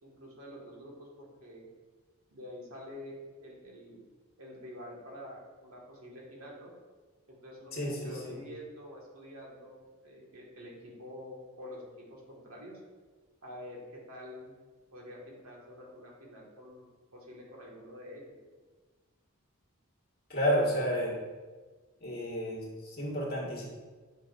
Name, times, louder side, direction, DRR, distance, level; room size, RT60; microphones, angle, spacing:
voice 1, 0.0-1.7 2.3-4.0 4.4-6.7 7.3-12.8 13.4-14.6 14.9-16.8 17.1-18.4, left 1 dB, 85° right, -3 dB, 1.8 m, -47 dB
voice 2, 7.7-8.4 20.3-21.1 22.0-23.6, equal, 45° left, -4 dB, 1.9 m, -31 dB
8.4 x 5.8 x 2.6 m, 1.4 s
head